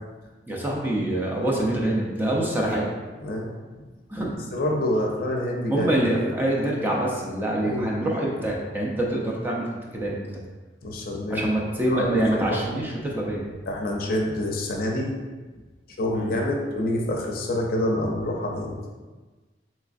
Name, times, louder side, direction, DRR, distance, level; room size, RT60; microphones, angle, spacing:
voice 1, 0.5-2.9 4.1-4.4 5.7-9.7 9.9-10.2 11.3-13.5 16.1-16.3, right 1 dB, 10° right, -3 dB, 0.5 m, -25 dB
voice 2, 3.2-3.8 4.5-6.3 7.6-7.9 10.8-11.5 11.9-12.6 13.7-15.1 16.0-18.8, left 1 dB, 55° left, 0 dB, 0.5 m, -27 dB
3.6 x 3.1 x 2.5 m, 1.3 s
head